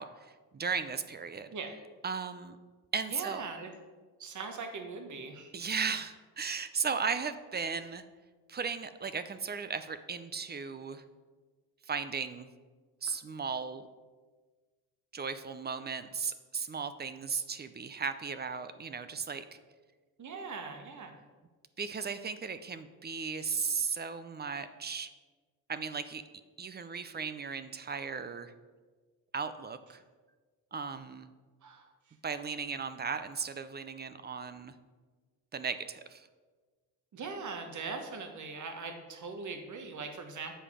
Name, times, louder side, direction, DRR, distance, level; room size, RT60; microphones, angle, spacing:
voice 1, 0.0-1.5 2.0-2.6 2.9-3.5 5.5-8.0 8.5-11.0 11.9-12.5 13.0-13.9 15.1-19.4 21.8-25.1 25.7-26.2 26.6-28.5 29.3-30.0 30.7-31.3 32.2-34.7 35.5-36.3, right 5 dB, 25° right, 12 dB, 0.5 m, -36 dB
voice 2, 3.1-3.7 4.2-5.5 20.2-21.2 31.6-32.2 37.1-40.6, right 4 dB, 50° right, 5 dB, 1.2 m, -41 dB
7.7 x 5.0 x 4.9 m, 1.4 s
cardioid pair, 75°, 39 cm